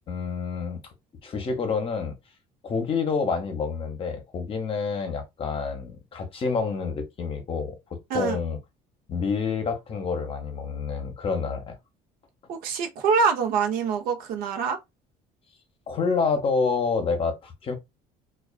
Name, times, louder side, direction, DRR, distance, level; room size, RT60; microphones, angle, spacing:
voice 1, 0.1-0.8 1.2-2.2 2.6-8.6 9.1-11.7 15.9-17.7, left 5 dB, 35° left, 0.8 m, -28 dB
voice 2, 12.5-14.8, right 5 dB, 75° right, 0.7 m, -25 dB
2.4 x 2.3 x 2.2 m
cardioid pair, 120°, 15 cm